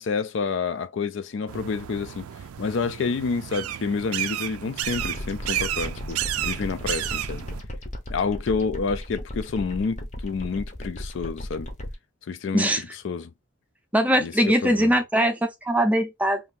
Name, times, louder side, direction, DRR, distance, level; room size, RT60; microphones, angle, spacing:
voice 1, 0.0-2.3 2.6-7.4 8.1-11.7 12.3-13.3 14.2-14.9, left 5 dB, 60° left, 0.3 m, -29 dB
sound 1, 1.5-7.6, right 12 dB, 90° right, 0.4 m, -32 dB
sound 2, 4.8-11.9, left 1 dB, 35° left, 0.7 m, -36 dB
voice 2, 13.9-16.4, equal, 5° right, 0.5 m, -21 dB
2.7 x 2.6 x 3.7 m
head